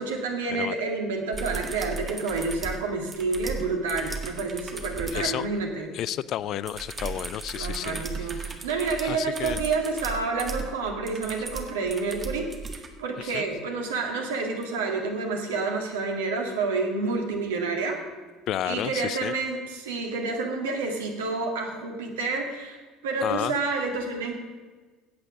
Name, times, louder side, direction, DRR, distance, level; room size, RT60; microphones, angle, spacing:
voice 1, 0.0-5.9 7.6-18.0 18.6-24.3, right 3 dB, 70° right, 2 dB, 2.1 m, -29 dB
sound 1, 1.3-5.3 6.7-12.9 14.6-14.7, right 4 dB, 25° right, 1.7 m, -36 dB
voice 2, 5.1-5.4 5.9-8.0 9.0-9.6 13.2-13.5 18.5-19.3 23.2-23.5, left 11 dB, 50° left, 18 dB, 0.4 m, -31 dB
15.5 x 9.0 x 6.3 m, 1.4 s
figure-of-eight pair, 60°, 0 cm